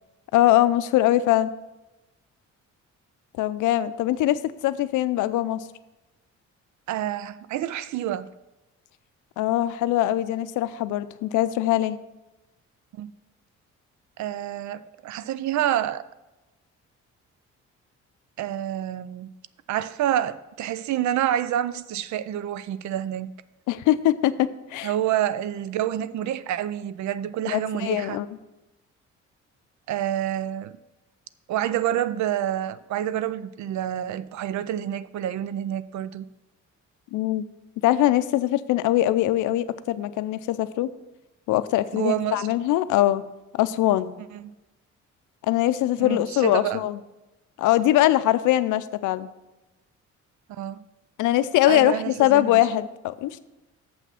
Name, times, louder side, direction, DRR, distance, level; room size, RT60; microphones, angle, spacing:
voice 1, 0.3-1.5 3.4-5.6 9.4-12.0 23.7-24.9 27.5-28.3 37.1-37.4 37.8-40.9 41.5-43.2 43.5-44.1 45.4-47.0 47.6-49.3 51.2-53.4, left 14 dB, 85° left, 0.5 m, -22 dB
voice 2, 6.9-8.3 12.9-13.1 14.2-16.0 18.4-19.3 19.7-23.3 24.8-28.2 29.9-30.8 31.5-36.3 41.9-42.5 44.3-44.5 46.0-46.9 50.5-50.8 51.7-52.6, right 11 dB, 70° right, 0.5 m, -28 dB
7.0 x 5.9 x 5.6 m
cardioid pair, 90°, 30 cm